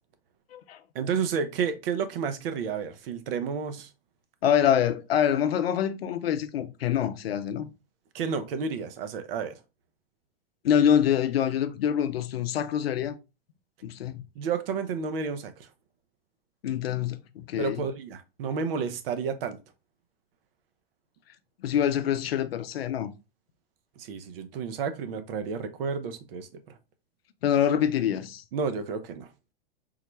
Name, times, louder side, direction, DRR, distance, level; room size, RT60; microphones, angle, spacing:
voice 1, 0.9-3.9 8.1-9.6 14.4-15.7 17.6-19.6 24.0-26.8 28.5-29.3, right 6 dB, 75° right, 0.7 m, -31 dB
voice 2, 4.4-7.7 10.6-13.2 13.8-14.2 16.6-17.9 21.6-23.1 27.4-28.4, left 9 dB, 90° left, 0.5 m, -25 dB
3.8 x 2.2 x 3.0 m
hypercardioid pair, 110°, 29 cm